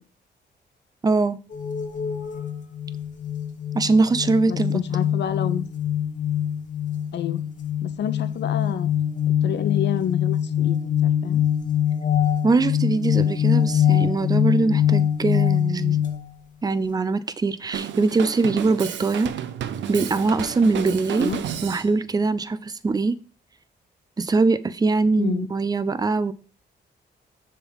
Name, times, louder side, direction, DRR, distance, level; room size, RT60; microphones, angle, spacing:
voice 1, 1.0-1.4 3.7-4.8 12.4-16.0 16.6-19.3 19.9-21.3 21.6-23.2 24.2-26.3, right 3 dB, 20° right, 0.5 m, -22 dB
sound 1, 1.5-16.3, left 10 dB, 45° left, 1.1 m, -23 dB
voice 2, 4.5-5.7 7.1-7.4 7.8-8.9 9.4-11.4 21.2-21.4 25.2-25.5, left 9 dB, 70° left, 0.8 m, -29 dB
Drum kit, 17.7-21.9, right 9 dB, 85° right, 0.6 m, -32 dB
7.0 x 3.7 x 6.1 m
cardioid pair, 105°, 18 cm